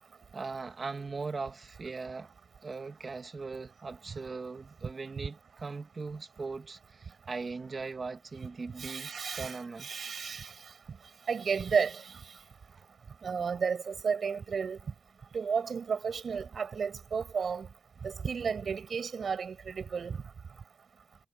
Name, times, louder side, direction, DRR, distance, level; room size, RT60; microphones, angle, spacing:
voice 1, 0.3-2.3 2.6-9.9 12.8-12.9, right 4 dB, 35° right, 2.0 m, -40 dB
voice 2, 8.8-10.5 11.3-12.1 13.2-14.8 15.3-17.7 18.0-20.2, right 6 dB, 50° right, 5.7 m, -32 dB
wide cardioid pair, 170°, 0 cm